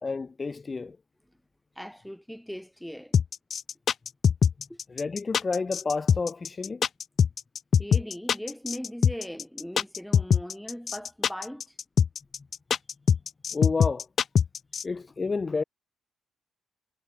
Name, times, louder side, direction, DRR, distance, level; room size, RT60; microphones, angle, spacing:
voice 1, 0.0-1.0 4.9-6.8 13.5-14.1 14.8-15.6, left 4 dB, 30° left, 3.0 m, -30 dB
voice 2, 1.8-3.2 4.7-4.8 7.8-11.6, equal, ahead, 7.8 m, -39 dB
sound 1, 3.1-14.8, left 7 dB, 55° left, 0.7 m, -22 dB
cardioid pair, 90°, 0 cm